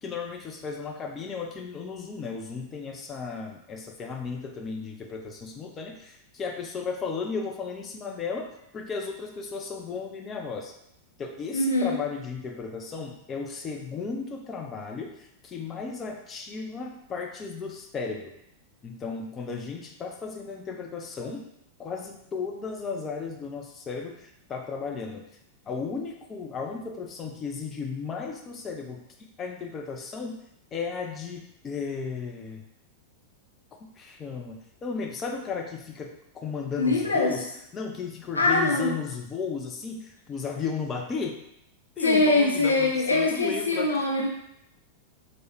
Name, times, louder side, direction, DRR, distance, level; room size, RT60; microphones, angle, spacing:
voice 1, 0.0-10.7 11.2-18.3 18.8-21.5 21.8-25.2 25.7-29.0 29.4-30.4 30.7-32.6 34.0-34.6 34.8-37.4 37.7-41.4 42.0-44.3, left 5 dB, 25° left, 2 dB, 0.4 m, -35 dB
voice 2, 11.5-12.0 36.8-37.3 38.3-38.9 42.0-44.3, left 2 dB, 80° left, 0 dB, 0.6 m, -23 dB
4.6 x 2.1 x 2.9 m, 0.80 s
figure-of-eight pair, 90°, 0 cm